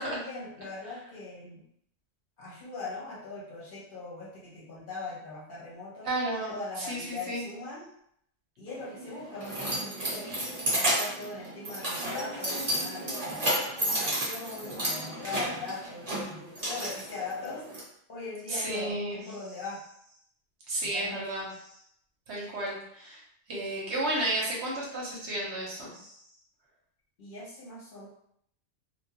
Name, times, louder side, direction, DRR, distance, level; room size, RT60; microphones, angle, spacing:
voice 1, 0.0-1.6 2.4-6.1 6.5-7.9 8.6-10.3 10.8-19.8 20.8-21.2 27.2-28.1, left 3 dB, 50° left, -5 dB, 0.8 m, -41 dB
voice 2, 6.0-7.4 18.5-19.2 20.7-21.5 22.3-23.2 23.5-26.2, right 1 dB, 70° right, -3 dB, 1.0 m, -32 dB
Keys jangling, 8.7-17.8, right 1 dB, 35° right, 0.9 m, -32 dB
2.2 x 2.2 x 2.8 m, 0.71 s
omnidirectional pair, 1.2 m